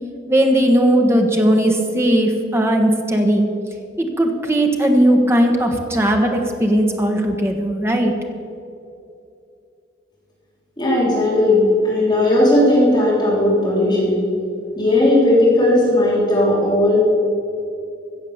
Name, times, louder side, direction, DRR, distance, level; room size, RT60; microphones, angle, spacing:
voice 1, 0.3-3.5 4.0-8.1, right 1 dB, 15° right, 3 dB, 1.2 m, -17 dB
voice 2, 10.8-14.2 14.7-17.0, left 1 dB, 25° left, -6 dB, 3.4 m, -16 dB
15.0 x 7.5 x 7.2 m, 2.7 s
head